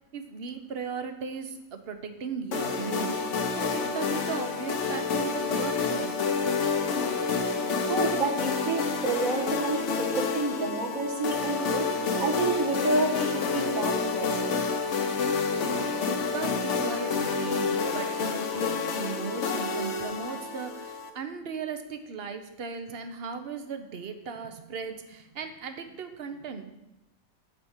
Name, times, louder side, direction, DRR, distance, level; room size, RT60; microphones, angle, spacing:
voice 1, 0.1-6.1 15.6-26.6, right 5 dB, 50° right, 8 dB, 1.0 m, -37 dB
sound 1, 2.5-21.1, left 4 dB, 60° left, 1.1 m, -29 dB
voice 2, 7.9-11.9 12.2-14.4, right 3 dB, 70° right, 1 dB, 1.9 m, -29 dB
9.0 x 5.0 x 7.2 m, 0.94 s
omnidirectional pair, 1.5 m